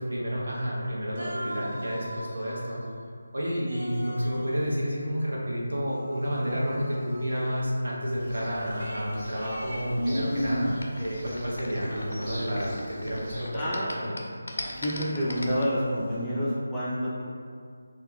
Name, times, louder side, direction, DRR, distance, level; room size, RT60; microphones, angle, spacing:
voice 1, 0.0-2.8 3.3-14.2, equal, 70° right, -6 dB, 0.8 m, -30 dB
sound 1, 0.5-0.8 1.1-2.9 3.4-5.4 5.9-7.8 8.8-11.3 11.7-13.2 13.8-13.9 14.6-16.2, right 1 dB, 50° right, 1.1 m, -43 dB
sound 2, 8.0-13.5, equal, 15° right, 0.9 m, -44 dB
sound 3, 8.8-13.2 13.5-15.6, equal, 70° left, 0.4 m, -32 dB
voice 2, 13.5-13.9 14.7-17.2, equal, 5° left, -12 dB, 0.4 m, -28 dB
2.2 x 2.1 x 3.6 m, 2.2 s
figure-of-eight pair, 160°, 0 cm